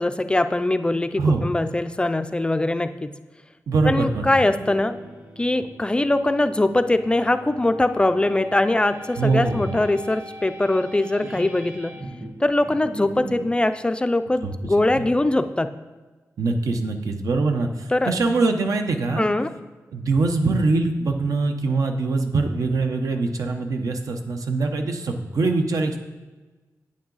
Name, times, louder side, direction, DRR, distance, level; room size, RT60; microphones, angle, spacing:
voice 1, 0.0-3.1 3.8-4.9 5.4-11.9 12.4-15.7 17.9-18.1 19.2-19.5, left 2 dB, 15° left, 10 dB, 0.3 m, -22 dB
voice 2, 3.7-4.3 9.2-9.8 11.2-11.3 14.4-15.1 16.4-19.3 19.9-26.0, right 3 dB, 75° right, 5 dB, 0.9 m, -23 dB
sound 1, 4.4-13.6, equal, 35° right, 1.1 m, -40 dB
8.7 x 8.5 x 3.9 m, 1.2 s
wide cardioid pair, 135°, 6 cm